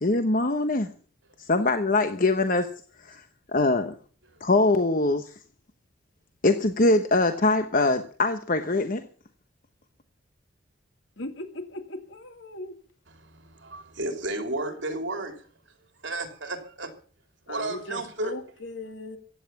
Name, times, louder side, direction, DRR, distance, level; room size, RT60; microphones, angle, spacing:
voice 1, 0.0-0.9 1.5-2.7 3.0-3.2 3.5-3.9 4.4-5.3 6.4-9.0, left 2 dB, 45° left, 1.0 m, -23 dB
voice 2, 11.2-12.8 17.5-19.2, left 2 dB, 80° left, 2.5 m, -38 dB
voice 3, 13.2-15.5 16.0-16.9 17.5-18.3, right 2 dB, 70° right, 3.3 m, -33 dB
15.5 x 9.9 x 7.0 m
head